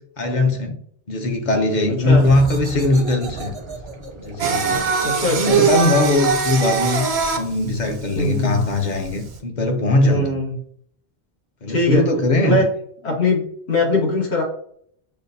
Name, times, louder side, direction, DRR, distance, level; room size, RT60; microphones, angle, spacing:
voice 1, 0.2-0.8 1.1-3.5 4.2-4.8 5.3-7.1 7.4-10.3 11.6-12.6, left 2 dB, 50° left, 4 dB, 0.7 m, -20 dB
sound 1, 2.0-7.4, right 4 dB, 40° right, 0.4 m, -35 dB
Singing, 4.4-9.4, right 6 dB, 90° right, 0.9 m, -21 dB
voice 2, 5.0-5.6 7.6-7.7 8.1-8.7 10.0-10.6 11.7-12.0 12.4-12.7 13.0-14.4, left 2 dB, 80° left, -3 dB, 1.5 m, -21 dB
6.5 x 2.3 x 2.6 m, 0.66 s
omnidirectional pair, 1.1 m